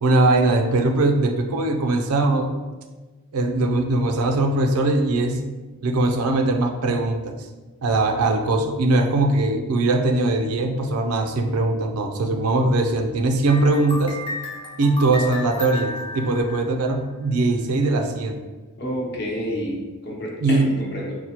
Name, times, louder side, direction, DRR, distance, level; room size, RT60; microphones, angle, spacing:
voice 1, 0.0-2.6 3.3-5.4 5.8-7.4 7.8-14.2 14.8-18.4 20.4-20.7, right 2 dB, 85° right, 5 dB, 0.4 m, -21 dB
sound 1, 13.5-17.2, left 2 dB, 25° left, 0.4 m, -34 dB
voice 2, 18.8-21.2, equal, 50° left, -4 dB, 0.8 m, -29 dB
4.3 x 2.1 x 2.8 m, 1.3 s
head